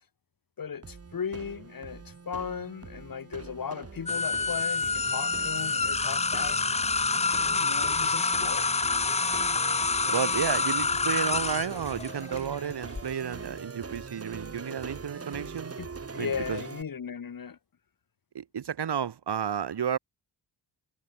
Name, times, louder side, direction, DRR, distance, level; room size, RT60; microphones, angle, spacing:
voice 1, 0.6-6.6 7.5-8.7 15.8-17.6, left 6 dB, 50° left, 7.5 m, -37 dB
sound 1, 0.8-16.8, right 5 dB, 35° right, 6.4 m, -43 dB
sound 2, 4.1-13.0, left 4 dB, 15° left, 0.4 m, -27 dB
voice 2, 10.1-15.7 16.2-16.6 18.3-20.0, right 8 dB, 65° right, 4.3 m, -32 dB
wide cardioid pair, 175°, 42 cm